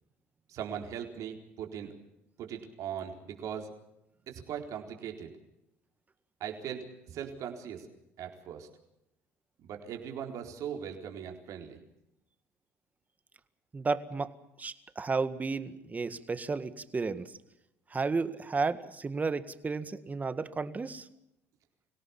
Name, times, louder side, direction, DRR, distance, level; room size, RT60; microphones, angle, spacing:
voice 1, 0.5-1.9 2.4-3.7 4.3-5.3 6.4-7.9 8.2-8.7 9.6-11.8, right 8 dB, 60° right, 3 dB, 4.2 m, -39 dB
voice 2, 13.7-14.3 14.6-17.3 17.9-21.1, right 4 dB, 25° right, 11 dB, 1.9 m, -33 dB
25.0 x 17.0 x 7.3 m, 0.83 s
hypercardioid pair, 75°, 6 cm